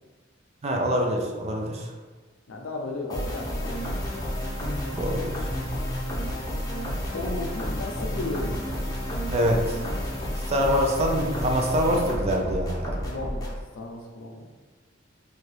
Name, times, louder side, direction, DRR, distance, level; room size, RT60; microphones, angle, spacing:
voice 1, 0.6-1.9 4.9-5.5 9.3-9.8 10.5-13.0, equal, 35° right, 1 dB, 0.4 m, -25 dB
voice 2, 2.5-4.1 7.1-8.6 13.0-14.4, left 2 dB, 85° left, 2 dB, 0.5 m, -35 dB
sound 1, 3.1-13.6, equal, 20° left, 0.5 m, -30 dB
2.6 x 2.3 x 3.2 m, 1.3 s
head